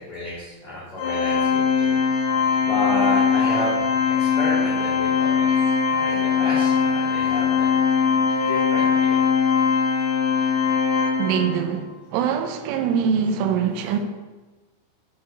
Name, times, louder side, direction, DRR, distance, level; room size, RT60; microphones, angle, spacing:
voice 1, 0.0-2.0 2.6-3.8 4.2-7.8 8.4-9.2 10.9-11.0, left 1 dB, 25° left, 2.5 m, -31 dB
Organ, 1.0-11.7, left 6 dB, 70° left, 4.2 m, -21 dB
voice 2, 11.2-14.0, right 7 dB, 85° right, 3.4 m, -23 dB
9.3 x 5.8 x 6.7 m
omnidirectional pair, 5.4 m